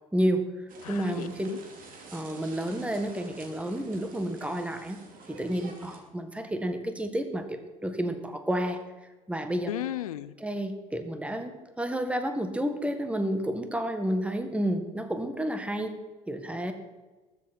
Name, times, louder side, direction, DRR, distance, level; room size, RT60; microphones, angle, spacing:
voice 1, 0.1-0.5 0.9-1.5 2.1-5.0 5.3-8.8 9.3-9.7 10.4-16.0 16.3-16.7, right 1 dB, 5° right, 7 dB, 1.7 m, -30 dB
sound 1, 0.7-6.0, right 4 dB, 50° right, 2.6 m, -49 dB
voice 2, 0.8-1.6 9.7-10.3, left 12 dB, 80° left, 15 dB, 0.6 m, -35 dB
20.5 x 7.8 x 4.4 m, 1.3 s
hypercardioid pair, 60°, 18 cm